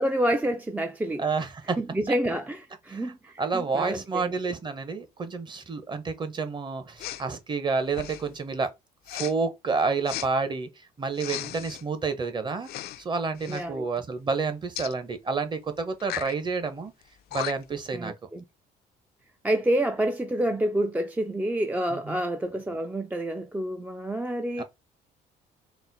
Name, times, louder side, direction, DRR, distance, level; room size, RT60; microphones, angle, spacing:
voice 1, 0.0-1.2 1.8-4.4 13.5-13.9 17.9-18.4 19.4-24.6, right 1 dB, 10° right, 0.4 m, -28 dB
voice 2, 1.2-1.8 2.9-3.1 3.4-8.7 9.1-10.7 11.0-12.7 13.0-16.9 17.3-18.1 21.9-22.2 24.6-24.7, right 4 dB, 25° right, 0.8 m, -29 dB
Respiratory sounds, 7.0-7.3 7.9-8.3 9.1-9.3 10.1-10.3 11.1-11.8 12.6-13.0 13.3-13.6 14.8-14.9 16.0-16.4 17.0-17.1 17.3-17.8, left 13 dB, 65° left, 0.4 m, -36 dB
4.0 x 2.1 x 4.0 m
cardioid pair, 110°, 17 cm